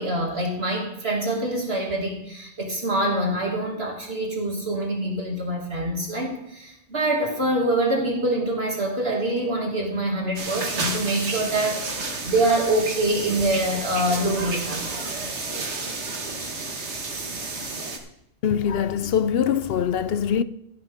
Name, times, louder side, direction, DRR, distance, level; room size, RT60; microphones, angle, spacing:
voice 1, 0.0-15.3, right 1 dB, 65° right, 2.7 m, -25 dB
sound 1, 10.4-18.0, right 3 dB, 80° right, 1.8 m, -31 dB
voice 2, 18.4-20.4, left 8 dB, 65° left, 0.8 m, -23 dB
15.5 x 10.0 x 3.6 m
omnidirectional pair, 1.1 m